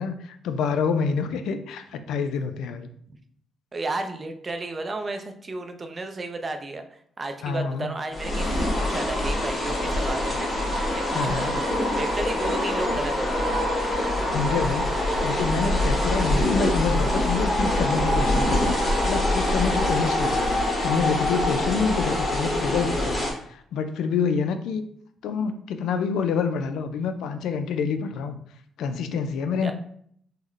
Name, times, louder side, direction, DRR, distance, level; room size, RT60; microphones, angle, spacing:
voice 1, 0.0-2.9 7.4-7.9 11.1-11.5 14.3-24.9 25.2-28.4 28.8-29.7, left 5 dB, 80° left, 8 dB, 0.3 m, -27 dB
voice 2, 3.7-11.5 12.0-13.5 29.6-29.7, right 3 dB, 35° right, 6 dB, 0.4 m, -33 dB
sound 1, 8.1-23.3, left 1 dB, 25° left, 1.3 m, -24 dB
3.7 x 2.1 x 3.1 m, 0.64 s
cardioid pair, 90°, 0 cm